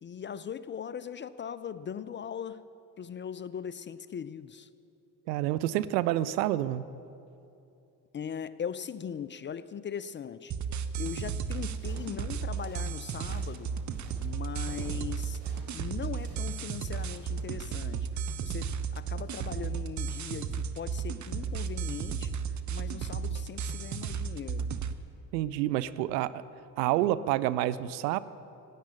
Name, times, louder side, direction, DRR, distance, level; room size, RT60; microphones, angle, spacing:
voice 1, 0.0-2.7 3.0-4.7 8.1-10.5 11.0-13.8 14.2-15.4 15.7-22.3 22.7-24.7, left 8 dB, 25° left, 16 dB, 0.4 m, -40 dB
voice 2, 5.3-6.9 25.3-26.4 26.8-28.2, right 14 dB, 75° right, 16 dB, 0.6 m, -28 dB
sound 1, 10.5-24.9, right 6 dB, 35° right, 0.9 m, -34 dB
sound 2, 10.9-17.3, right 2 dB, 55° right, 4.6 m, -53 dB
16.0 x 9.8 x 8.5 m, 2.8 s
hypercardioid pair, 50°, 50 cm